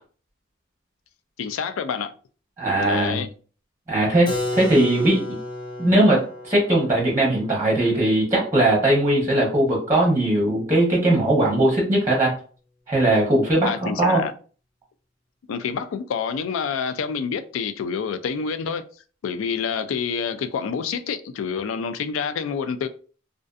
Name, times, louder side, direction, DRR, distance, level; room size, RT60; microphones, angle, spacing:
voice 1, 1.4-2.1 2.8-3.3 13.6-14.3 15.5-18.8 19.2-22.9, left 6 dB, 75° left, 0.3 m, -27 dB
voice 2, 2.6-3.2 3.9-5.2 5.8-12.3 12.9-14.2, right 1 dB, 15° right, 0.7 m, -19 dB
Keyboard (musical), 4.3-9.9, left 2 dB, 25° left, 0.6 m, -33 dB
2.5 x 2.4 x 2.3 m
head